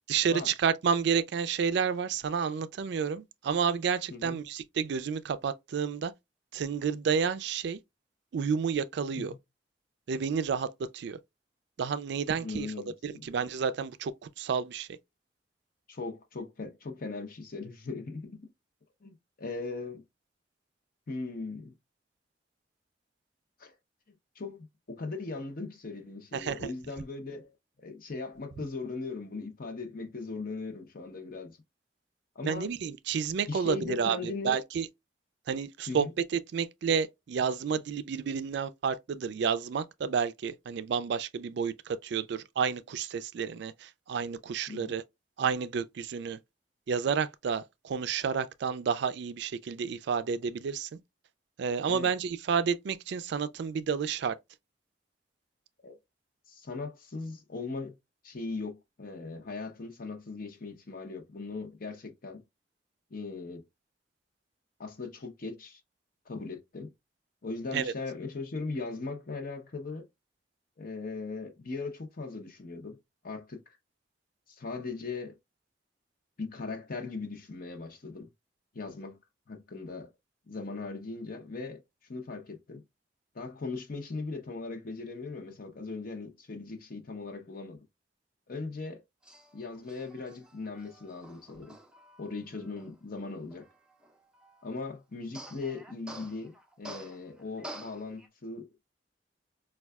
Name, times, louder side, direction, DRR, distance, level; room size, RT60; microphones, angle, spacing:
voice 1, 0.1-6.1 6.5-7.8 8.3-9.3 10.1-10.7 10.9-11.2 11.8-12.7 13.0-14.1 14.4-14.9 26.3-26.7 32.4-34.9 35.5-36.1 36.5-45.0 45.4-46.4 46.9-51.0 51.6-54.4 67.7-67.9, right 6 dB, 65° right, 0.3 m, -30 dB
voice 2, 12.4-13.2 15.9-18.5 19.0-20.0 21.1-21.7 23.6-23.7 24.4-27.5 27.8-31.6 32.3-32.7 33.5-34.6 35.9-36.1 44.7-44.9 51.9-52.1 55.8-55.9 56.5-58.0 58.2-62.4 63.1-63.6 64.8-65.8 66.3-66.9 67.4-70.1 70.8-73.0 73.2-73.6 74.5-75.4 76.4-78.3 78.7-79.2 79.5-80.1 80.5-81.8 82.1-82.8 83.3-87.8 88.5-89.0 89.5-91.8 92.2-93.7 94.6-98.7, left 3 dB, 50° left, 0.8 m, -39 dB
Male speech man speaking, 89.2-94.8 95.3-98.3, right 1 dB, 5° right, 0.6 m, -49 dB
4.4 x 2.3 x 2.3 m
head